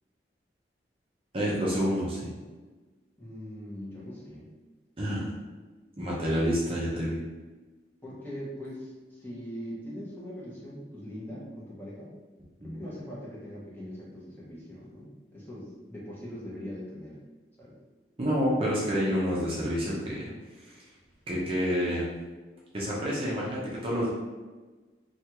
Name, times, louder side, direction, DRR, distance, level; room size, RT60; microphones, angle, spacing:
voice 1, 1.3-2.3 5.0-5.2 6.0-7.2 12.6-12.8 18.2-20.3 20.6-20.8 21.3-22.1 22.7-24.1, equal, 30° right, -6 dB, 0.6 m, -28 dB
voice 2, 3.2-4.5 8.0-12.1 12.6-17.2 17.6-17.8, equal, 10° left, -7 dB, 0.9 m, -41 dB
3.3 x 2.3 x 2.9 m, 1.3 s
head